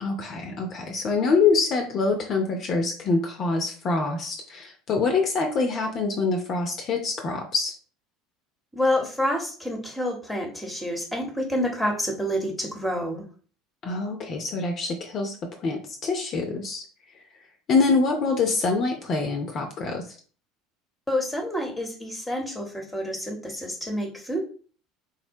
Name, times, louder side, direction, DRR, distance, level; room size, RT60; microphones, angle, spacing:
voice 1, 0.0-7.8 13.8-15.4 15.6-16.8 17.7-20.0, left 4 dB, 40° left, 3 dB, 0.5 m, -25 dB
voice 2, 8.7-13.2 21.1-24.4, left 1 dB, 5° left, 2 dB, 0.9 m, -28 dB
3.7 x 2.1 x 2.7 m, 0.41 s
figure-of-eight pair, 70°, 0 cm